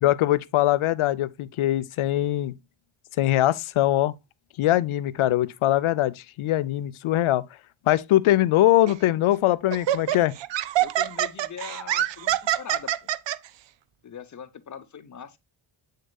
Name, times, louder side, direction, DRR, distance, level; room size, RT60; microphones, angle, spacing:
voice 1, 0.0-2.5 3.2-4.1 4.6-7.4 7.9-10.3, left 14 dB, 80° left, 0.6 m, -22 dB
Laughter, 8.9-9.1 9.7-13.4, right 12 dB, 60° right, 0.6 m, -25 dB
voice 2, 10.8-13.1 14.0-15.4, left 7 dB, 35° left, 0.8 m, -41 dB
7.7 x 6.5 x 2.2 m
cardioid pair, 100°, 49 cm